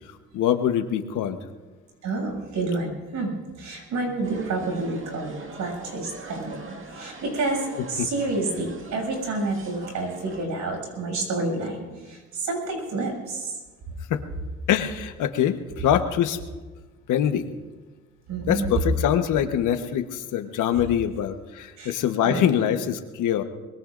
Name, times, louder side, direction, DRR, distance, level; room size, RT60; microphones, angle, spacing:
voice 1, 0.3-1.4 8.0-8.1 14.1-14.2 14.7-16.4 17.1-17.4 18.5-23.4, left 10 dB, 85° left, 7 dB, 1.2 m, -24 dB
voice 2, 2.0-13.6 18.3-18.7 20.7-20.8 21.8-22.0 22.2-22.6, right 2 dB, 70° right, 1 dB, 7.0 m, -29 dB
sound 1, 4.2-10.5, right 3 dB, 45° right, 2.0 m, -43 dB
23.5 x 21.0 x 2.6 m, 1.3 s
cardioid pair, 90°, 30 cm